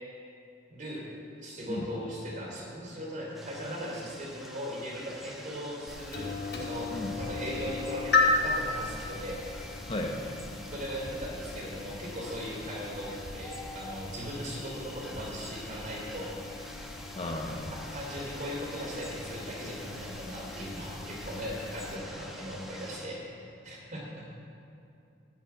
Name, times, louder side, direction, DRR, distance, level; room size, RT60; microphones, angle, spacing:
voice 1, 0.7-1.1 1.4-9.4 10.7-16.7 17.7-24.3, equal, 45° right, -2 dB, 3.2 m, -38 dB
sound 1, 3.3-23.1, equal, ahead, 1.0 m, -47 dB
sound 2, 5.9-22.0, left 3 dB, 60° left, 1.5 m, -35 dB
voice 2, 9.9-10.2 17.2-17.7, left 1 dB, 30° left, 1 dB, 1.0 m, -34 dB
10.5 x 7.6 x 8.7 m, 2.7 s
head